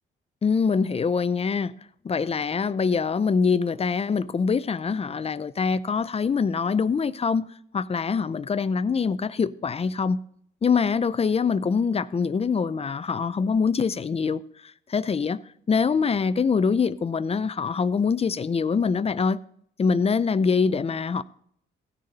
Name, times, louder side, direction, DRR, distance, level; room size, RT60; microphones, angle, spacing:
voice 1, 0.4-1.7 2.0-7.5 7.7-10.2 10.6-14.4 14.9-15.4 15.7-19.4 19.8-21.2, left 5 dB, 30° left, 0.6 m, -24 dB
16.5 x 6.6 x 4.1 m
cardioid pair, 90°, 20 cm